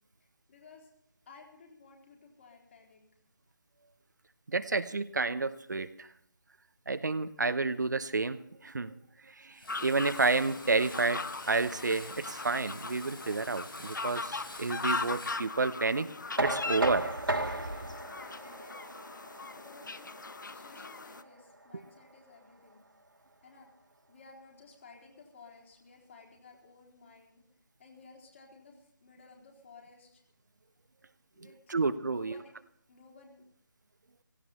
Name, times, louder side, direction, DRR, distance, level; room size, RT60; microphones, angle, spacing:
voice 1, 0.5-0.9 1.3-3.0 18.2-19.1 19.3-22.8 23.4-23.7 24.1-27.4 27.8-30.2 31.3-31.8 32.0-32.5 32.9-33.4, left 4 dB, 35° left, -1 dB, 4.1 m, -56 dB
voice 2, 4.5-6.1 6.9-8.9 9.3-16.1 16.4-17.1 21.7-21.8 31.7-32.4, right 3 dB, 55° right, 12 dB, 0.9 m, -30 dB
Frying (food), 9.5-15.4, left 1 dB, 75° left, 6.1 m, -49 dB
sound 1, 9.7-21.2, left 3 dB, 60° left, 0.8 m, -39 dB
Knock, 16.4-22.2, right 2 dB, 80° right, 2.0 m, -36 dB
16.5 x 16.5 x 4.3 m, 0.71 s
figure-of-eight pair, 160°, 12 cm